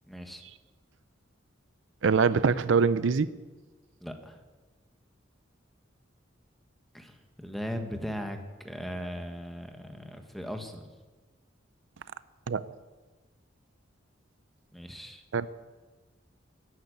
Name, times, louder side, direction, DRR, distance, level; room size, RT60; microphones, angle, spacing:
voice 1, 0.1-0.4 2.0-2.1 4.0-4.4 6.9-10.9 14.7-15.2, equal, ahead, 5 dB, 1.4 m, -38 dB
voice 2, 2.0-3.3 12.5-12.7 15.3-15.5, right 5 dB, 75° right, 16 dB, 0.5 m, -24 dB
13.5 x 9.6 x 9.3 m, 1.3 s
head